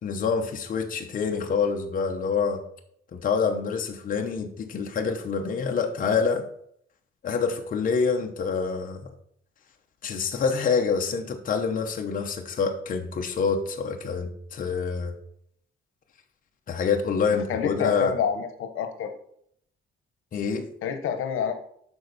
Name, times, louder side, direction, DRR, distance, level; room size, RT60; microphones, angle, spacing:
voice 1, 0.0-2.6 3.1-6.4 7.2-9.0 10.0-15.1 16.7-18.1 20.3-20.7, left 5 dB, 40° left, 3 dB, 1.0 m, -26 dB
voice 2, 17.5-19.1 20.8-21.5, left 7 dB, 85° left, 7 dB, 1.1 m, -27 dB
12.0 x 4.5 x 4.1 m, 0.69 s
cardioid pair, 160°, 21 cm